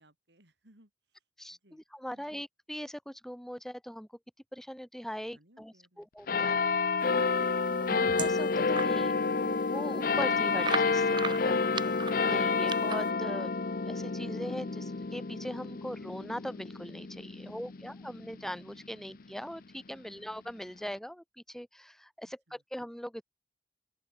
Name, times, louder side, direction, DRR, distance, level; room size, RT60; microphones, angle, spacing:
voice 1, 0.0-1.2 1.5-1.8 2.1-2.3 5.3-7.5 17.3-18.0 19.9-20.1 22.2-22.6, right 1 dB, 85° right, 7.9 m, -66 dB
voice 2, 1.4-4.1 4.5-6.6 7.8-11.6 12.2-13.5 13.9-23.2, equal, ahead, 1.5 m, -41 dB
sound 1, 6.3-19.2 19.8-19.9, left 4 dB, 55° left, 0.7 m, -29 dB
sound 2, 7.4-9.0 9.4-9.5 9.8-9.9 10.6-13.1, right 5 dB, 25° right, 0.9 m, -37 dB
open air
head